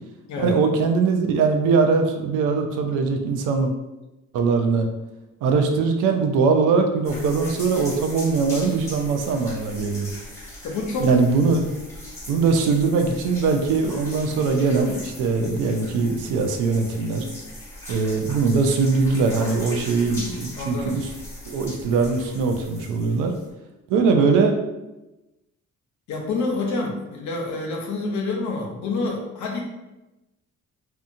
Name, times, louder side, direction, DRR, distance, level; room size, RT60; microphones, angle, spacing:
voice 1, 0.4-3.7 4.3-4.9 5.4-10.1 11.0-11.7 12.3-17.2 17.9-21.1 21.5-23.3 23.9-24.5, right 4 dB, 90° right, 4 dB, 0.5 m, -21 dB
sound 1, 7.0-23.5, left 1 dB, 10° left, 1.1 m, -39 dB
voice 2, 10.6-11.1 20.5-21.0 26.1-29.6, left 3 dB, 70° left, 0 dB, 0.7 m, -27 dB
2.8 x 2.2 x 2.5 m, 1.0 s
cardioid pair, 90°, 30 cm